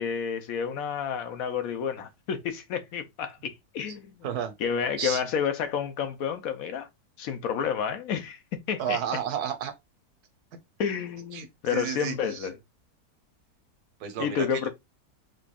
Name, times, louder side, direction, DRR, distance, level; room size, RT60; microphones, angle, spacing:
voice 1, 0.0-4.3 4.6-6.9 7.2-9.0 10.8-12.5 14.2-14.7, left 7 dB, 70° left, 1.0 m, -30 dB
voice 2, 8.8-9.7 11.3-12.5 14.0-14.7, right 8 dB, 80° right, 1.4 m, -32 dB
5.1 x 3.0 x 2.3 m
omnidirectional pair, 1.7 m